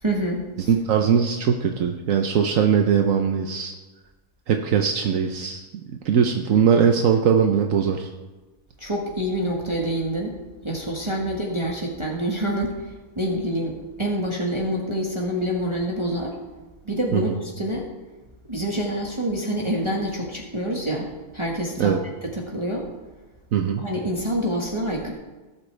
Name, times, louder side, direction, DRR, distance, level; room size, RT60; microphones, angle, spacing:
voice 1, 0.0-0.7 8.8-10.3 10.6-16.4 16.8-17.8 18.5-22.0 22.2-22.9 23.8-25.1, right 1 dB, 20° right, -2 dB, 1.5 m, -27 dB
voice 2, 0.7-3.7 4.5-5.6 6.0-8.1 17.1-17.3 21.8-22.0 23.5-23.8, right 7 dB, 75° right, 4 dB, 1.2 m, -20 dB
19.0 x 8.5 x 3.3 m, 1.2 s
omnidirectional pair, 1.4 m